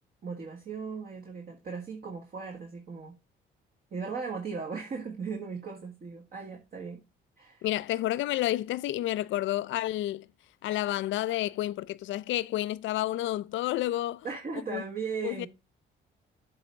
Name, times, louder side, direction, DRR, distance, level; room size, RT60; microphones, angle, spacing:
voice 1, 0.2-3.2 3.9-7.0 7.4-7.6 14.2-15.5, right 5 dB, 45° right, 1.6 m, -37 dB
voice 2, 7.6-10.3 10.6-14.3 14.7-14.8 15.2-15.5, left 14 dB, 75° left, 0.4 m, -30 dB
7.7 x 3.5 x 6.3 m
cardioid pair, 90°, 20 cm